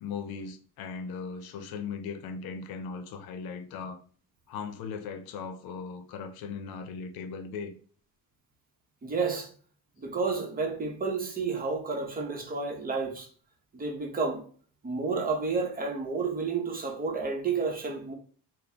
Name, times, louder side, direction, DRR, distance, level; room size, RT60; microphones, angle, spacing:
voice 1, 0.0-4.0 4.5-7.7, left 5 dB, 80° left, 0.7 m, -38 dB
voice 2, 9.0-9.5 10.0-13.3 13.7-14.4 14.8-18.1, right 4 dB, 25° right, 0.8 m, -31 dB
4.0 x 2.1 x 3.4 m
cardioid pair, 135°, 36 cm